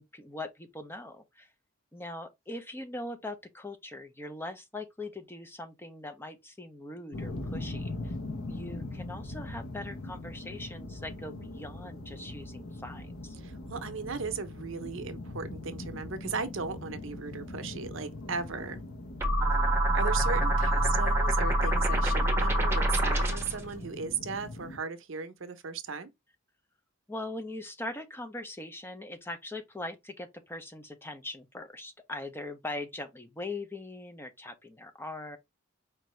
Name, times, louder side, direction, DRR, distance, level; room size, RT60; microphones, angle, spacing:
voice 1, 0.0-1.5 1.9-8.1 8.5-13.4 19.4-19.8 27.1-35.4, left 2 dB, 10° left, 0.5 m, -41 dB
sound 1, 7.1-24.8, left 2 dB, 85° left, 0.9 m, -41 dB
voice 2, 13.4-18.8 19.9-26.1, right 5 dB, 70° right, 0.6 m, -36 dB
sound 2, 19.2-23.6, right 1 dB, 10° right, 0.8 m, -25 dB
4.6 x 2.6 x 3.1 m
head